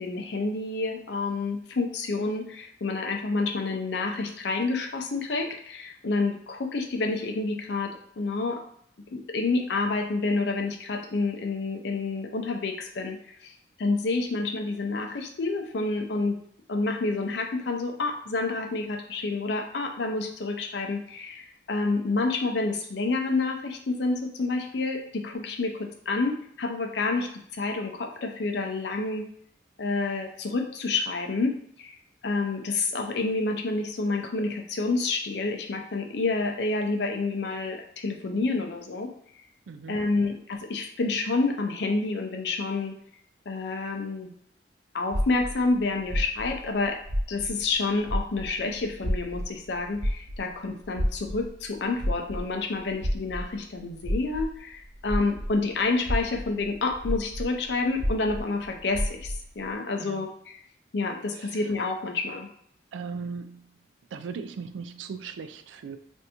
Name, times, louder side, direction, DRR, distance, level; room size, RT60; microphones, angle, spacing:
voice 1, 0.0-8.6 9.1-13.5 13.8-16.4 16.7-29.2 29.8-32.0 32.2-39.1 39.9-42.9 43.5-44.3 44.9-47.0 47.3-60.6 60.9-62.5, left 3 dB, 65° left, 3 dB, 0.5 m, -29 dB
voice 2, 39.7-40.0 60.0-60.3 61.4-61.6 62.9-63.7 64.1-66.0, right 5 dB, 80° right, 9 dB, 0.3 m, -38 dB
sound 1, 45.1-47.8 48.0-55.6 56.0-59.5, equal, 60° right, 1.0 m, -30 dB
3.3 x 2.6 x 2.8 m, 0.65 s
head